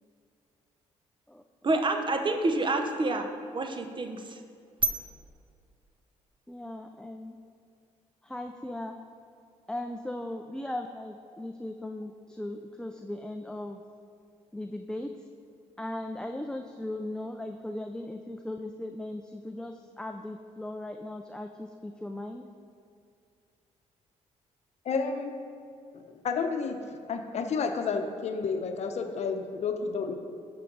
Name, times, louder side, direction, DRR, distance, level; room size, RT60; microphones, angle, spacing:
voice 1, 1.6-4.4 4.8-4.9, right 2 dB, 40° right, 5 dB, 0.9 m, -28 dB
voice 2, 6.5-7.4 8.2-9.0 9.7-13.8 14.5-15.1 15.8-22.5, left 1 dB, 5° left, 5 dB, 0.4 m, -38 dB
voice 3, 24.8-25.4 25.9-26.8 27.1-30.1, left 5 dB, 60° left, 6 dB, 0.8 m, -31 dB
12.5 x 5.8 x 3.9 m, 2.4 s
cardioid pair, 80°, 13 cm